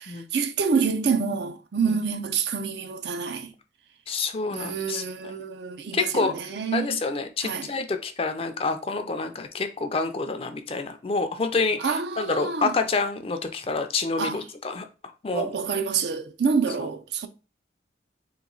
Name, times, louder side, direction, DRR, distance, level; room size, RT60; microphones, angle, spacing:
voice 1, 0.0-3.5 4.5-7.0 7.4-7.7 11.8-12.7 14.2-14.4 15.3-17.3, right 5 dB, 65° right, 0.5 m, -27 dB
voice 2, 4.1-5.3 5.9-6.3 6.7-14.9 15.2-15.5, left 4 dB, 30° left, 0.4 m, -28 dB
3.6 x 3.0 x 3.8 m
head